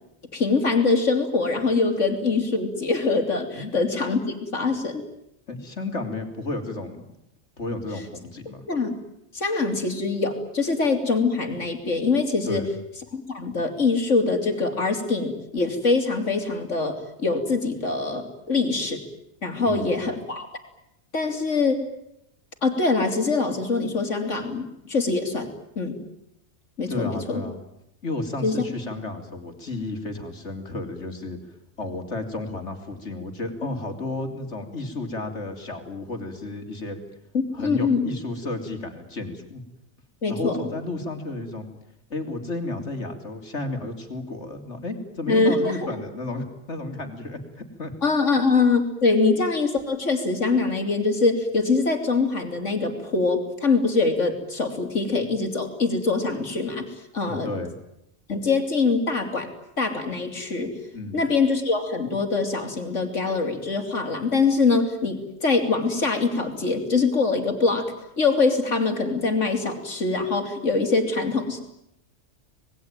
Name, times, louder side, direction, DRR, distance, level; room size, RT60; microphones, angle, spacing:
voice 1, 0.3-5.0 8.7-8.9 9.3-12.7 13.1-19.1 19.4-20.5 21.1-21.8 22.6-25.5 25.8-26.0 26.8-27.4 28.4-28.6 37.3-38.0 40.2-40.6 45.3-45.9 48.0-56.9 57.1-57.5 58.3-59.5 59.8-60.7 61.1-71.6, left 4 dB, 85° left, 6 dB, 3.6 m, -23 dB
voice 2, 5.5-7.1 7.6-8.6 12.5-12.7 19.6-20.0 26.9-27.6 28.0-37.0 37.5-39.6 40.3-41.7 42.1-47.9 57.2-57.7 60.9-61.2, left 2 dB, 70° left, 6 dB, 3.7 m, -32 dB
26.5 x 20.5 x 9.1 m, 0.81 s
omnidirectional pair, 1.2 m